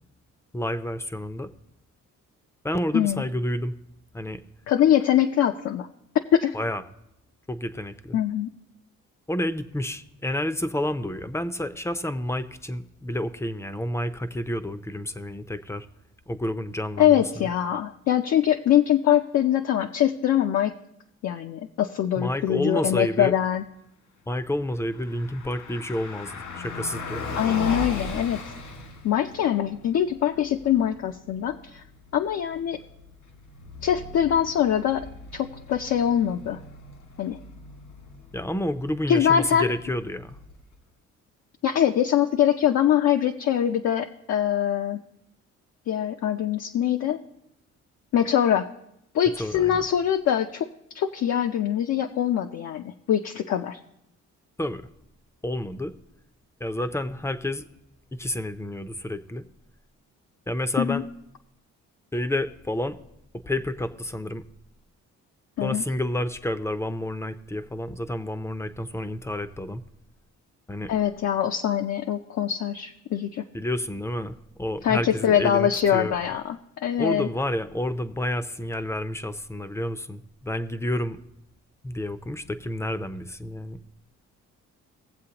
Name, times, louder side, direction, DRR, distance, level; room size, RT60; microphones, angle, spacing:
voice 1, 0.5-1.5 2.6-3.7 4.1-4.4 6.5-6.8 7.5-8.2 9.3-15.9 16.3-17.5 22.2-23.3 24.3-27.4 38.3-40.4 49.4-49.8 54.6-54.8 55.4-55.9 56.6-57.7 58.1-59.4 60.5-61.0 62.1-63.0 63.5-64.4 65.6-69.8 70.7-70.9 73.5-76.2 77.0-81.2 81.8-83.8, left 1 dB, 10° left, 11 dB, 0.5 m, -29 dB
voice 2, 4.7-5.9 6.3-6.6 8.1-8.5 17.0-20.7 21.2-23.6 27.3-28.4 29.0-31.8 32.1-32.8 33.8-35.1 35.3-36.6 37.2-37.4 39.1-39.7 41.6-45.0 45.9-47.2 48.1-48.6 49.1-50.7 50.9-53.8 60.8-61.0 65.6-65.8 70.9-73.4 74.8-77.3, left 10 dB, 60° left, 5 dB, 0.6 m, -23 dB
Car passing by, 24.6-40.8, left 3 dB, 85° left, 2.1 m, -39 dB
19.5 x 7.6 x 2.9 m, 0.82 s
cardioid pair, 90°, 30 cm